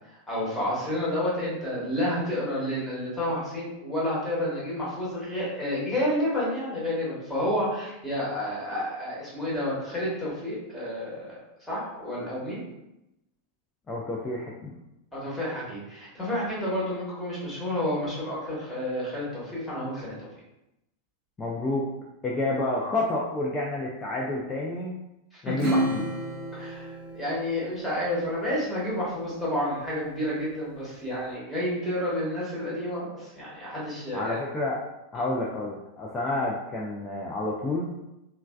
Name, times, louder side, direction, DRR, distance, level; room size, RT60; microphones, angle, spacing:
voice 1, 0.1-11.4 11.7-12.6 15.1-20.1 25.3-25.5 26.5-34.4 35.1-35.3, left 1 dB, 5° left, -8 dB, 1.2 m, -30 dB
voice 2, 13.9-14.7 21.4-21.8 22.2-25.0 25.4-26.1 34.1-34.8 35.1-37.9, left 2 dB, 20° left, -4 dB, 0.4 m, -29 dB
Acoustic guitar / Strum, 25.6-28.5, right 1 dB, 40° right, 0.6 m, -31 dB
3.2 x 2.2 x 2.3 m, 0.90 s
figure-of-eight pair, 90°, 0 cm